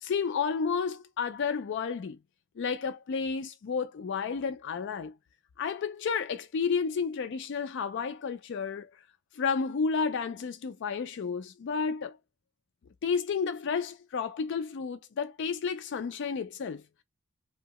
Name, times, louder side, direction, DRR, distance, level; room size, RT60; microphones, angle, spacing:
voice 1, 0.0-2.2 2.6-5.1 5.6-8.9 9.3-12.2 13.0-16.8, left 5 dB, 55° left, 0.3 m, -31 dB
2.7 x 2.2 x 2.9 m
head